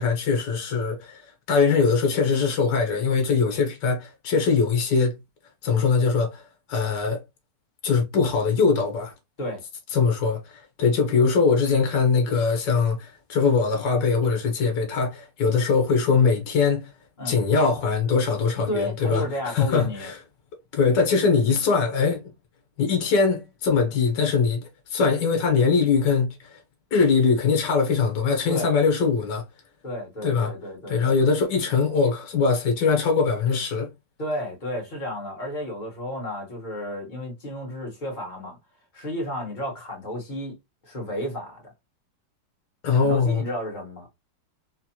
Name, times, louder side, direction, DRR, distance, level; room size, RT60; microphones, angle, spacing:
voice 1, 0.0-5.2 5.6-6.4 6.7-7.2 7.8-9.1 9.9-16.9 17.2-20.2 20.7-22.2 22.8-26.6 26.9-29.4 30.2-30.5 30.9-33.9 42.8-43.4, left 5 dB, 85° left, 1.6 m, -22 dB
voice 2, 18.7-20.1 28.5-28.7 29.8-31.0 34.2-38.6 38.9-40.5 40.8-41.7 42.9-44.1, equal, 30° left, 1.3 m, -32 dB
4.3 x 2.3 x 2.8 m
omnidirectional pair, 1.9 m